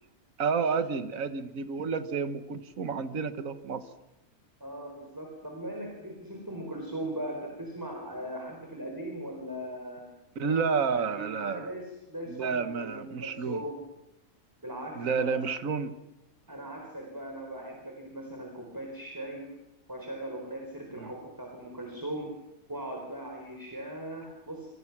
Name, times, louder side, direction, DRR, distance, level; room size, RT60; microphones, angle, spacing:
voice 1, 0.4-3.8 10.3-11.7 12.3-13.6 14.9-16.0 21.0-21.1, right 5 dB, 75° right, 10 dB, 1.7 m, -30 dB
voice 2, 4.6-10.0 10.4-13.7 14.6-15.4 16.5-19.4 19.9-22.3 22.7-24.7, right 1 dB, 15° right, 1 dB, 4.3 m, -39 dB
27.5 x 25.0 x 6.0 m, 0.93 s
omnidirectional pair, 1.4 m